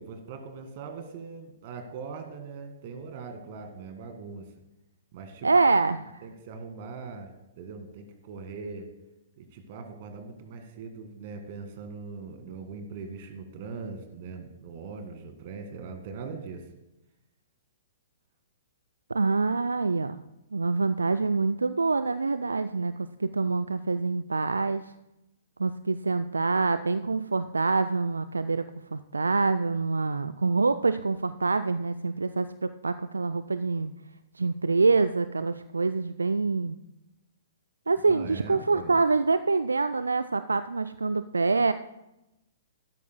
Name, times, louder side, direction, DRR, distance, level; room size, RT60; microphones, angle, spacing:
voice 1, 0.0-4.5 5.1-5.5 6.2-8.9 9.4-16.7 38.0-39.0, right 4 dB, 45° right, 7 dB, 1.8 m, -41 dB
voice 2, 5.4-6.2 19.1-20.2 20.5-24.9 25.6-33.9 34.3-36.8 37.9-41.7, right 3 dB, 75° right, 12 dB, 0.4 m, -26 dB
15.5 x 13.0 x 2.2 m, 0.94 s
figure-of-eight pair, 115°, 0 cm